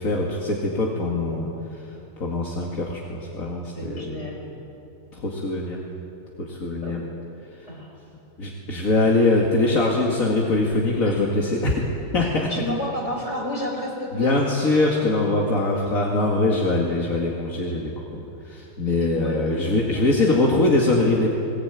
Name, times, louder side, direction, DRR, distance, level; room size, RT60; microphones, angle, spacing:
voice 1, 0.0-1.9 2.2-4.3 5.1-5.8 6.4-7.0 7.6-7.7 8.4-12.5 14.1-21.3, left 2 dB, 75° left, -2 dB, 2.6 m, -23 dB
voice 2, 3.8-4.5 6.8-7.1 7.7-7.9 12.5-14.4 19.0-19.5 19.9-20.0, left 1 dB, 55° left, 0 dB, 5.4 m, -31 dB
20.5 x 20.5 x 9.1 m, 2.8 s
omnidirectional pair, 1.4 m